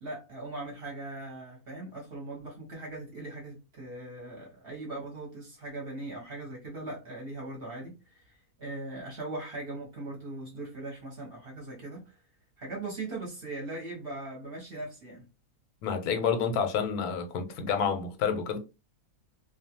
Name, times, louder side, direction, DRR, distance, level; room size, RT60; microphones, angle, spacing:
voice 1, 0.0-12.2 12.6-15.2, right 2 dB, 45° right, 0.9 m, -40 dB
voice 2, 15.8-18.6, left 6 dB, 85° left, 1.1 m, -29 dB
2.5 x 2.3 x 2.8 m
omnidirectional pair, 1.6 m